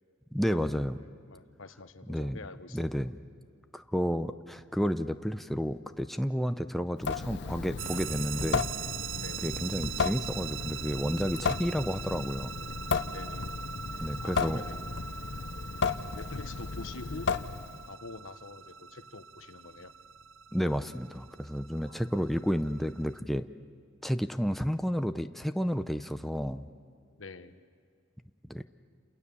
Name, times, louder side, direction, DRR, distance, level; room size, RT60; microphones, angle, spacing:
voice 1, 0.3-1.0 2.1-2.4 2.7-3.2 3.7-8.7 9.4-12.5 14.0-14.6 20.5-23.5 24.0-26.7 28.5-28.6, equal, ahead, 8 dB, 0.6 m, -31 dB
voice 2, 1.0-2.8 9.2-9.4 13.1-13.6 14.2-14.9 16.0-17.3 17.8-19.9 21.8-22.1 27.2-27.6, left 3 dB, 90° left, 10 dB, 1.1 m, -46 dB
Water tap faucet / Sink (filling or washing) / Drip, 7.0-17.9, left 5 dB, 60° left, 0.7 m, -34 dB
sound 1, 7.8-23.2, right 9 dB, 75° right, 0.7 m, -42 dB
29.5 x 27.5 x 7.1 m, 2.1 s
head